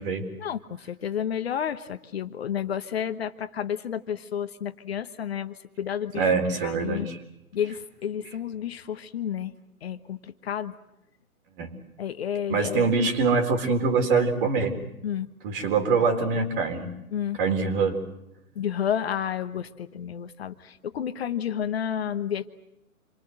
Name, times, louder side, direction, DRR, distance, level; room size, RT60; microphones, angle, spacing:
voice 1, 0.4-6.3 6.6-7.1 7.5-9.5 9.8-10.7 12.0-12.9 15.0-15.3 17.1-17.4 18.5-22.5, left 9 dB, 45° left, 10 dB, 1.2 m, -31 dB
voice 2, 6.1-7.2 11.6-11.7 12.5-14.8 15.4-16.9 17.4-18.0, right 4 dB, 35° right, 7 dB, 3.9 m, -24 dB
27.5 x 23.5 x 7.8 m, 0.87 s
figure-of-eight pair, 130°, 44 cm